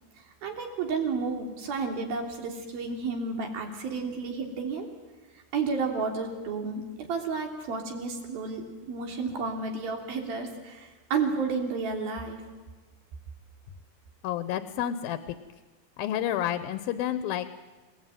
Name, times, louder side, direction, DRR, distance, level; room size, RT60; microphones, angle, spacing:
voice 1, 0.4-4.9 5.5-6.8 7.1-12.4, right 4 dB, 85° right, 3 dB, 5.0 m, -31 dB
voice 2, 14.2-15.2 16.0-17.6, left 11 dB, 80° left, 12 dB, 2.8 m, -30 dB
29.0 x 19.0 x 9.2 m, 1.3 s
omnidirectional pair, 4.1 m